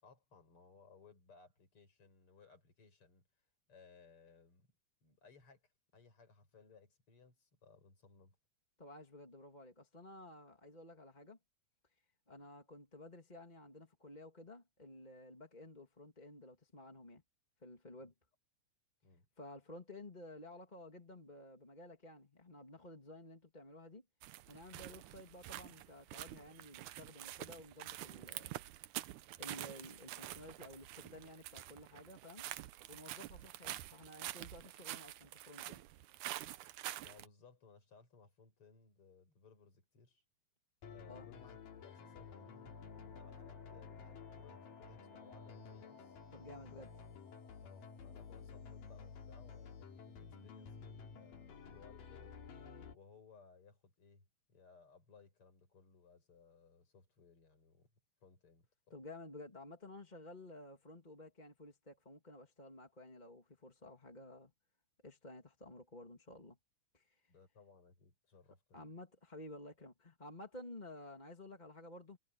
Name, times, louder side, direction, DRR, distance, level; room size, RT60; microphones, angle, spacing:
voice 1, 0.0-3.2 3.7-4.7 5.0-8.4 19.0-19.3 37.0-40.2 40.9-46.2 46.7-46.8 47.6-52.3 52.9-57.9 58.2-58.9 67.3-68.9, left 5 dB, 35° left, 6.9 m, -63 dB
voice 2, 8.8-11.4 12.3-17.2 17.6-18.1 19.4-24.0 24.5-28.5 29.4-32.5 32.9-35.8 41.1-41.3 46.3-46.9 58.9-64.5 65.0-66.6 66.9-67.3 68.7-72.2, left 1 dB, 15° left, 2.1 m, -53 dB
sound 1, 24.2-37.3, right 15 dB, 80° right, 1.8 m, -47 dB
sound 2, 40.8-53.0, left 5 dB, 65° left, 4.4 m, -52 dB
omnidirectional pair, 4.3 m